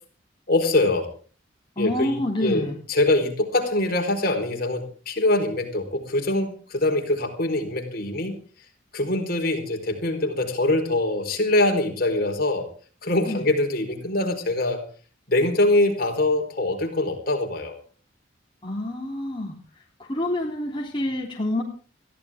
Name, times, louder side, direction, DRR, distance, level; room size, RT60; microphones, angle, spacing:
voice 1, 0.5-1.1 1.8-8.4 8.9-12.7 13.0-14.8 15.3-17.8, left 2 dB, 50° left, 4 dB, 4.3 m, -23 dB
voice 2, 1.8-2.7 13.3-13.5 18.6-19.6 20.0-21.6, left 1 dB, 25° left, -2 dB, 3.2 m, -27 dB
21.5 x 15.5 x 3.6 m, 0.40 s
head